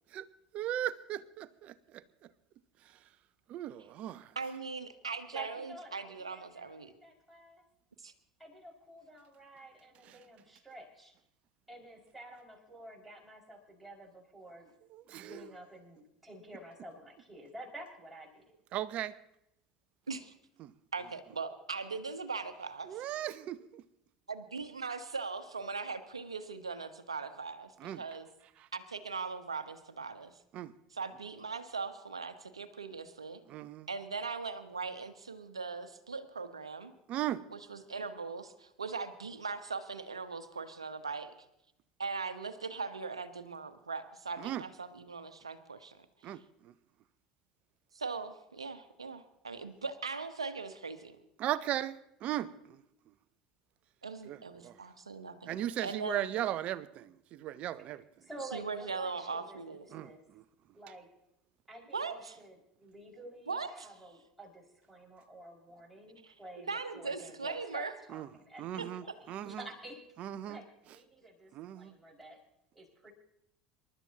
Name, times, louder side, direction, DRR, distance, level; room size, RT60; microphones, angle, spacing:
voice 1, 0.5-2.0 3.5-4.3 14.9-15.5 18.7-19.1 20.6-20.7 22.9-23.8 27.8-28.0 30.5-30.7 33.5-33.9 37.1-37.4 44.4-44.6 46.2-46.7 51.4-52.8 54.3-54.8 55.5-58.0 59.9-60.4 68.1-68.3 68.6-69.7 70.2-70.6 71.5-71.9, right 12 dB, 45° right, 16 dB, 0.7 m, -37 dB
voice 2, 4.3-6.9 8.0-8.1 20.1-20.3 20.9-23.0 24.3-28.3 28.7-30.3 30.9-33.4 33.9-36.9 37.5-41.3 42.0-46.4 47.9-51.2 54.0-55.5 55.8-56.3 58.5-59.9 61.9-62.4 63.5-63.9 66.2-66.3 66.7-67.9 68.8-68.9, right 4 dB, 90° right, 10 dB, 1.1 m, -40 dB
voice 3, 5.3-7.6 8.4-11.1 11.7-14.7 15.1-18.4 58.0-60.2 60.7-61.1 61.7-66.7 66.9-69.1 69.4-70.0 70.4-72.4 72.7-73.1, right 1 dB, 5° right, -4 dB, 5.7 m, -50 dB
27.5 x 12.5 x 2.9 m, 0.81 s
figure-of-eight pair, 75°, 3 cm